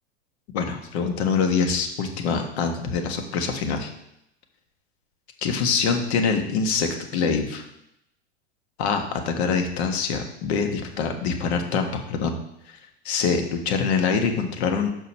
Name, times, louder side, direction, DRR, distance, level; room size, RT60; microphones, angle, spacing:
voice 1, 0.5-3.9 5.4-7.6 8.8-12.3 13.0-14.9, left 5 dB, 65° left, 4 dB, 1.5 m, -24 dB
6.3 x 5.4 x 5.5 m, 0.79 s
hypercardioid pair, 105°, 35 cm